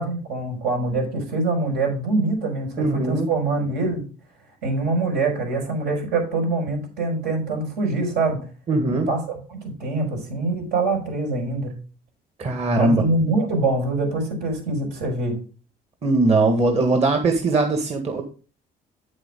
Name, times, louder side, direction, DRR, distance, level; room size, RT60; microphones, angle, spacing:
voice 1, 0.0-4.0 4.6-8.4 8.9-11.7 12.7-15.3, right 3 dB, 80° right, 2 dB, 6.0 m, -24 dB
voice 2, 2.8-3.3 8.7-9.1 12.4-13.0 16.0-18.2, right 2 dB, 40° right, 3 dB, 1.8 m, -20 dB
9.1 x 7.6 x 3.8 m, 0.36 s
cardioid pair, 110°, 17 cm